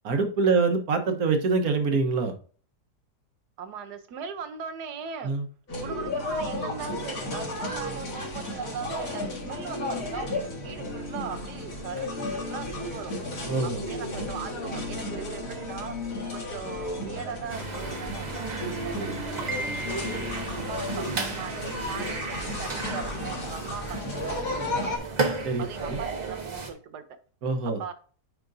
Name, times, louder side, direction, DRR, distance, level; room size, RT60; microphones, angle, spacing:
voice 1, 0.0-2.3 5.2-5.5 13.5-13.8 25.4-26.0 27.4-27.8, right 4 dB, 65° right, 1.5 m, -25 dB
voice 2, 3.6-5.4 5.8-13.1 13.6-16.0 16.3-18.5 18.8-25.2 25.6-27.0 27.8-27.9, right 6 dB, 85° right, 1.4 m, -39 dB
sound 1, 5.7-25.0, left 1 dB, 60° left, 2.2 m, -33 dB
sound 2, 17.5-26.7, right 3 dB, 30° right, 0.9 m, -34 dB
9.4 x 5.1 x 2.6 m
omnidirectional pair, 1.7 m